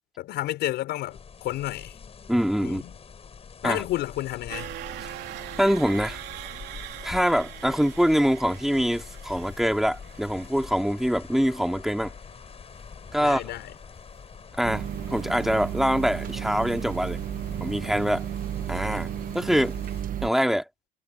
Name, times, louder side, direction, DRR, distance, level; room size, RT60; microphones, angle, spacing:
voice 1, 0.2-2.0 2.6-3.0 3.6-4.7 13.2-13.7, left 15 dB, 80° left, 6.2 m, -31 dB
sound 1, 1.1-20.0, left 6 dB, 35° left, 5.8 m, -45 dB
voice 2, 2.3-2.8 3.6-3.8 5.6-6.2 7.0-12.1 13.1-13.5 14.6-17.2 17.6-18.2 18.7-19.1 19.3-19.7 20.2-20.6, equal, ahead, 2.5 m, -24 dB
sound 2, 4.5-18.5 18.9-19.1 19.4-19.5, right 15 dB, 85° right, 3.4 m, -44 dB
sound 3, 14.6-20.3, right 10 dB, 55° right, 1.1 m, -33 dB
cardioid pair, 110°, 17 cm